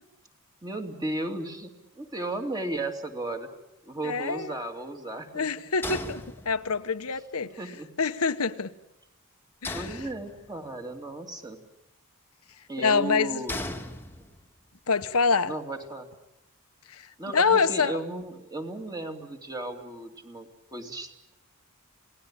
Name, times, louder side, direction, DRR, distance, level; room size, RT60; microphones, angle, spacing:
voice 1, 0.6-3.5 3.8-5.5 7.4-7.9 9.7-11.6 12.7-13.5 15.5-16.1 17.2-21.3, right 2 dB, 20° right, 4 dB, 2.6 m, -35 dB
voice 2, 4.0-4.5 5.3-7.5 8.0-8.7 9.6-10.0 12.8-13.4 14.9-15.5 16.9-17.9, left 5 dB, 75° left, 10 dB, 1.0 m, -26 dB
sound 1, 5.8-6.9 9.6-10.7 13.5-14.6, left 2 dB, 10° left, 1.7 m, -37 dB
28.5 x 18.5 x 8.8 m, 0.89 s
head